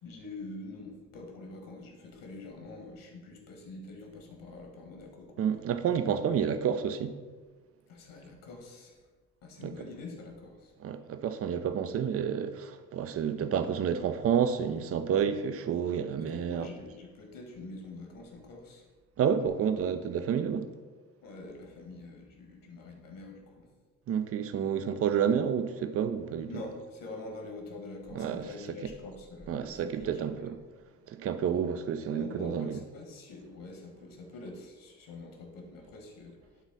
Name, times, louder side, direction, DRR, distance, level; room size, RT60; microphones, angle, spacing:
voice 1, 0.0-5.7 7.9-9.0 9.4-10.7 16.3-18.8 21.2-23.7 26.5-30.5 32.1-36.4, left 2 dB, 45° left, 1.9 m, -45 dB
voice 2, 5.4-7.1 9.6-9.7 10.8-16.7 19.2-20.7 24.1-26.5 28.1-28.5 29.5-30.6 31.1-32.8, right 8 dB, 30° right, 0.6 m, -29 dB
12.0 x 4.0 x 4.0 m
figure-of-eight pair, 50°, 45 cm